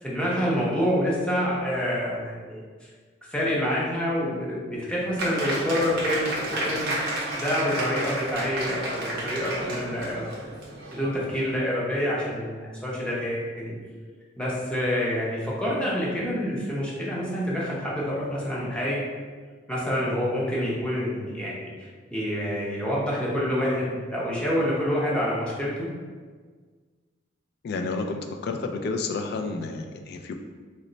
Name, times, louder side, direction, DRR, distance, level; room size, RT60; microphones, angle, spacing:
voice 1, 0.0-2.9 3.3-6.3 6.6-7.1 7.4-10.3 10.9-13.7 14.4-19.0 19.7-25.9, equal, 5° left, -6 dB, 0.7 m, -27 dB
Applause, 5.2-11.6, right 1 dB, 55° right, 0.6 m, -31 dB
voice 2, 27.6-30.3, left 3 dB, 60° left, 4 dB, 0.3 m, -30 dB
3.1 x 2.1 x 3.8 m, 1.5 s
head